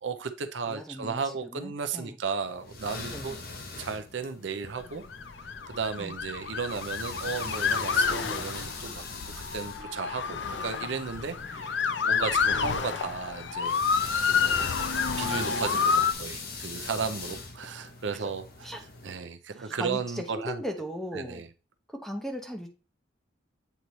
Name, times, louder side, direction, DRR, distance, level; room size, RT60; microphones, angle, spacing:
voice 1, 0.0-3.4 3.8-5.0 5.4-9.1 9.5-13.8 14.3-14.7 15.2-18.4 19.0-20.6 21.1-21.5, right 5 dB, 75° right, 9 dB, 0.6 m, -34 dB
voice 2, 0.6-2.1 3.1-3.4 6.0-6.2 18.1-18.3 18.6-18.8 19.6-21.4 21.9-22.7, equal, ahead, 4 dB, 0.8 m, -38 dB
sound 1, 2.4-19.2, left 3 dB, 50° left, 1.0 m, -41 dB
Motor vehicle (road) / Siren, 5.0-16.1, left 6 dB, 70° left, 0.5 m, -29 dB
8.1 x 3.1 x 4.1 m, 0.32 s
head